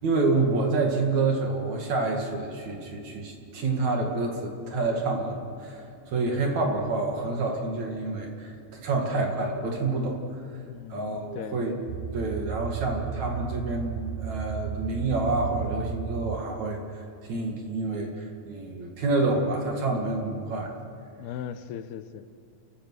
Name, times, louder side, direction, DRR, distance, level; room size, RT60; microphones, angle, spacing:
voice 1, 0.0-10.2 10.9-11.8 12.1-20.7, right 3 dB, 50° right, 1 dB, 3.3 m, -28 dB
sound 1, 2.6-16.4, right 9 dB, 80° right, 2.3 m, -37 dB
voice 2, 10.7-11.7 21.2-22.2, left 9 dB, 85° left, 11 dB, 2.7 m, -38 dB
29.5 x 15.0 x 6.5 m, 2.5 s
omnidirectional pair, 4.5 m